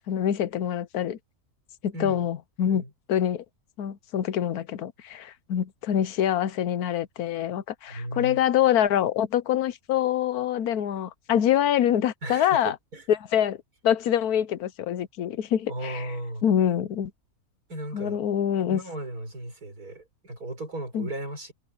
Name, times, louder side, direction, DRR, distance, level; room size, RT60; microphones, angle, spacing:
voice 1, 0.1-1.2 1.8-2.8 3.1-3.4 3.8-12.7 13.3-13.6 13.8-16.1 16.4-17.1 17.9-18.8 20.9-21.1, left 10 dB, 90° left, 1.3 m, -25 dB
voice 2, 1.9-2.3 2.7-2.9 7.9-8.4 12.2-13.0 15.7-16.5 17.7-18.2 18.7-21.5, right 1 dB, 80° right, 5.9 m, -36 dB
omnidirectional pair, 1.6 m